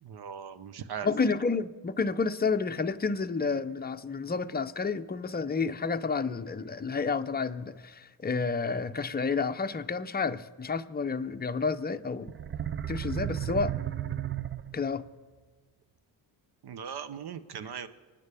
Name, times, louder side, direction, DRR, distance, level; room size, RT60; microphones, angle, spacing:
voice 1, 0.0-1.1 16.6-17.9, right 8 dB, 55° right, 13 dB, 0.9 m, -39 dB
voice 2, 1.0-12.3 12.9-13.7 14.7-15.0, left 4 dB, 20° left, 8 dB, 0.7 m, -30 dB
sound 1, 12.3-15.1, right 10 dB, 25° right, 0.4 m, -34 dB
27.5 x 10.0 x 3.5 m, 1.4 s
cardioid pair, 75°, 48 cm